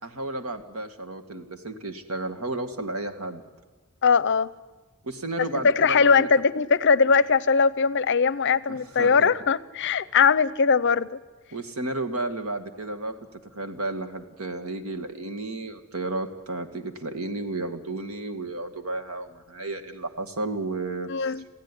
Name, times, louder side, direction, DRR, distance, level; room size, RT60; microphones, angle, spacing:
voice 1, 0.0-3.4 5.0-6.3 8.7-9.3 11.5-13.1 13.6-21.4, right 2 dB, 85° right, 7 dB, 2.0 m, -32 dB
voice 2, 4.0-4.5 5.8-11.1 21.1-21.4, left 5 dB, 55° left, 18 dB, 0.7 m, -20 dB
27.5 x 16.0 x 10.0 m, 1.3 s
head